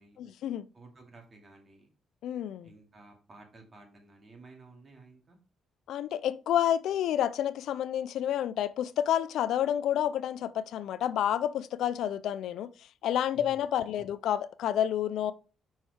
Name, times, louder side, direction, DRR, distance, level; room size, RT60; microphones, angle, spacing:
voice 1, 0.2-0.7 2.2-2.7 5.9-12.7 13.0-15.3, left 10 dB, 80° left, 0.4 m, -29 dB
voice 2, 0.7-1.9 2.6-5.4 13.3-14.1, right 3 dB, 35° right, 2.6 m, -54 dB
5.5 x 4.6 x 4.8 m
cardioid pair, 90°, 0 cm